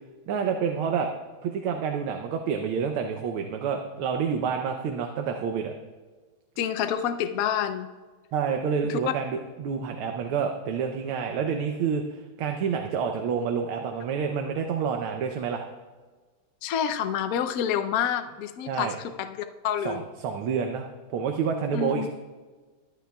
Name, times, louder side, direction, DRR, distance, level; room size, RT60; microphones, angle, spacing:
voice 1, 0.3-1.1 1.4-5.7 8.3-15.6 18.7-19.0 19.9-22.1, right 6 dB, 85° right, 4 dB, 1.6 m, -28 dB
voice 2, 6.6-7.9 8.8-9.0 16.6-20.0 21.7-22.1, left 9 dB, 90° left, 8 dB, 0.7 m, -28 dB
23.0 x 9.3 x 2.3 m, 1.4 s
omnidirectional pair, 2.3 m